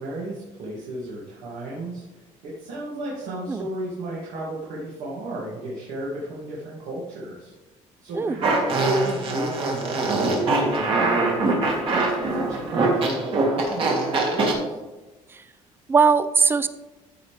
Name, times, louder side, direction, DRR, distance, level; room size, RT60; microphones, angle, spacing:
voice 1, 0.0-2.0 2.4-7.5 8.0-14.8, right 1 dB, 80° right, -5 dB, 2.3 m, -33 dB
Fart, 8.4-14.5, right 2 dB, 40° right, 1.9 m, -23 dB
voice 2, 15.9-16.7, right 5 dB, 15° right, 13 dB, 0.4 m, -20 dB
13.5 x 5.6 x 3.3 m, 1.1 s
cardioid pair, 155°, 13 cm